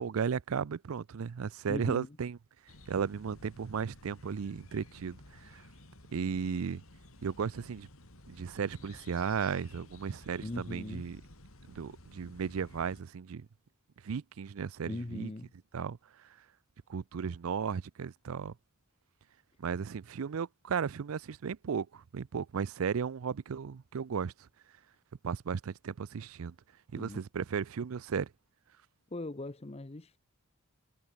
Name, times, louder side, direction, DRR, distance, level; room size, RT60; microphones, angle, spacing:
voice 1, 0.0-2.4 2.9-5.6 6.1-6.8 7.2-7.9 8.3-11.2 11.7-13.5 14.0-15.3 15.7-16.0 16.9-18.5 19.6-24.5 25.2-26.6 26.9-28.3, right 6 dB, 80° right, 0.5 m, -35 dB
voice 2, 1.7-2.2 10.4-11.1 14.8-15.5 27.0-27.2 29.1-30.2, left 2 dB, 30° left, 0.8 m, -40 dB
sound 1, 2.7-13.0, left 1 dB, 80° left, 4.7 m, -54 dB
head